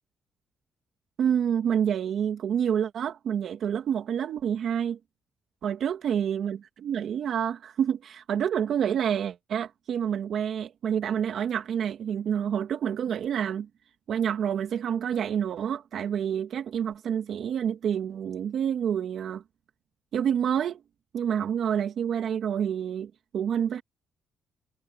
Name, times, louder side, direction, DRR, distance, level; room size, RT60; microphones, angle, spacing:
voice 1, 1.2-5.0 5.6-13.7 14.1-19.4 20.1-20.8 21.1-23.8, right 8 dB, 65° right, 2.3 m, -28 dB
cardioid pair, 90°, 0 cm